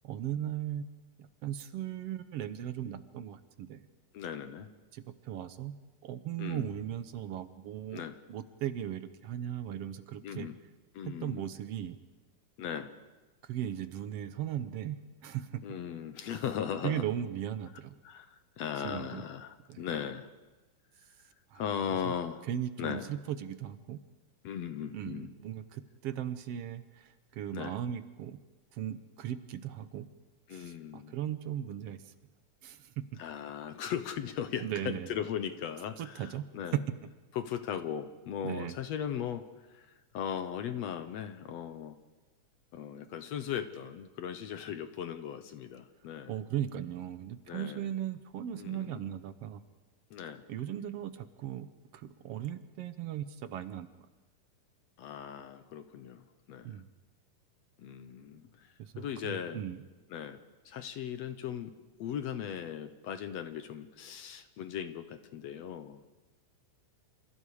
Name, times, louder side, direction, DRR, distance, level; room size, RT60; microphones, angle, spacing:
voice 1, 0.0-3.8 4.9-5.7 6.0-10.5 11.1-12.0 13.4-15.7 16.8-17.9 18.8-19.2 19.7-19.8 21.5-21.6 22.0-22.1 22.5-24.0 24.9-28.4 28.7-30.1 30.5-32.1 32.6-33.1 34.6-35.1 36.0-36.4 38.4-38.8 46.3-49.6 50.5-53.9 56.6-56.9 58.8-59.8, right 10 dB, 65° right, 11 dB, 1.6 m, -38 dB
voice 2, 4.1-4.7 6.4-6.7 7.9-8.2 10.2-10.6 10.9-11.4 12.6-12.9 15.6-17.1 18.0-20.3 21.5-22.5 22.8-23.1 24.4-25.3 27.5-27.8 30.5-31.1 33.2-36.8 37.3-42.0 42.7-46.4 47.5-47.9 48.6-49.0 50.1-50.5 55.0-56.8 57.8-59.6 60.1-60.4 60.7-61.7 62.0-66.1, left 8 dB, 65° left, 10 dB, 1.9 m, -38 dB
28.0 x 28.0 x 4.9 m, 1.2 s
omnidirectional pair, 3.6 m